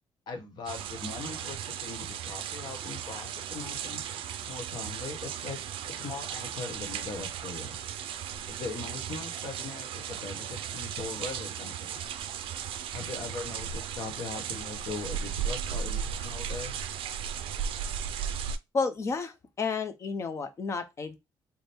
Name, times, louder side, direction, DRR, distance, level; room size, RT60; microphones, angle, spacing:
voice 1, 0.3-4.0 4.5-5.6 5.9-7.8 8.5-12.0 12.9-16.8, left 4 dB, 50° left, 1.1 m, -40 dB
sound 1, 0.7-18.6, right 8 dB, 70° right, 0.4 m, -36 dB
voice 2, 18.7-21.2, left 4 dB, 30° left, 0.6 m, -31 dB
3.5 x 2.1 x 4.2 m
cardioid pair, 155°, 9 cm